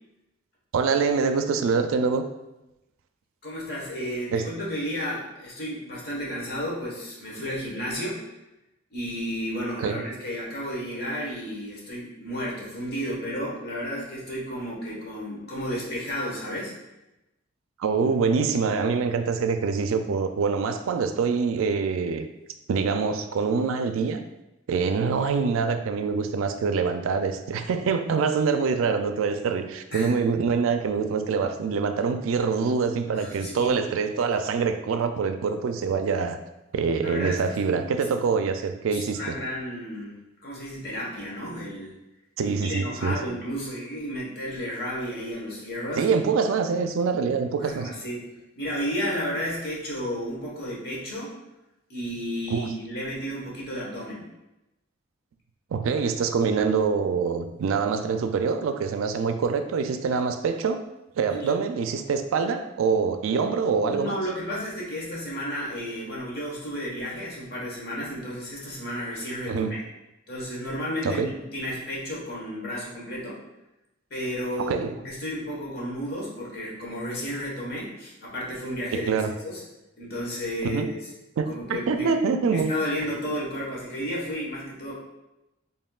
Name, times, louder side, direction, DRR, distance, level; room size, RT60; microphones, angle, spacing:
voice 1, 0.7-2.2 4.3-4.5 9.8-10.0 17.8-22.3 22.7-24.2 24.7-36.4 36.7-39.3 42.4-43.2 46.0-47.9 52.5-52.7 55.7-60.8 61.2-64.2 69.5-69.8 71.0-71.3 74.6-74.9 79.0-79.3 80.6-80.9 81.4-82.7, right 5 dB, 80° right, 8 dB, 0.3 m, -25 dB
voice 2, 3.4-8.2 8.9-16.7 29.9-30.1 33.0-33.8 37.0-37.8 38.9-41.9 42.4-46.1 47.6-48.2 48.6-51.3 51.9-54.3 61.3-61.5 63.8-69.8 70.3-73.4 74.1-74.8 75.0-79.1 79.4-79.6 80.0-80.8 81.5-82.1 82.4-84.9, equal, 50° left, -4 dB, 1.2 m, -32 dB
4.2 x 3.4 x 2.3 m, 0.94 s
head